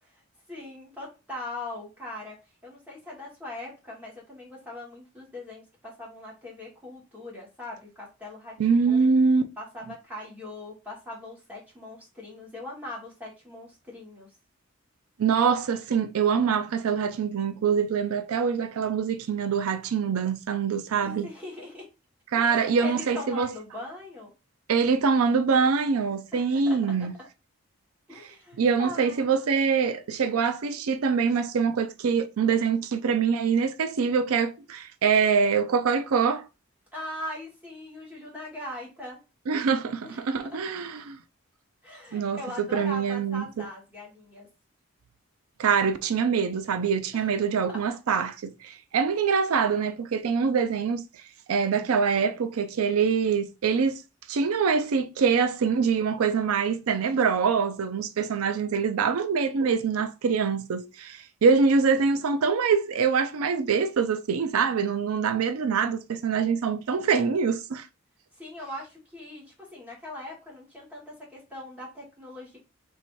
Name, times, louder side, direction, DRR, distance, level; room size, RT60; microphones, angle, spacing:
voice 1, 0.5-2.4 2.6-9.2 9.6-14.3 21.0-21.9 22.4-24.3 26.3-27.1 28.1-29.3 36.9-39.2 40.0-40.6 41.8-44.5 47.1-47.8 68.3-72.6, left 1 dB, 5° right, 1.8 m, -41 dB
voice 2, 8.6-9.4 15.2-21.3 22.3-23.5 24.7-27.1 28.6-36.5 39.5-41.2 42.1-43.7 45.6-51.0 51.5-54.0 54.3-67.9, right 5 dB, 90° right, 0.4 m, -24 dB
3.2 x 2.8 x 4.5 m
head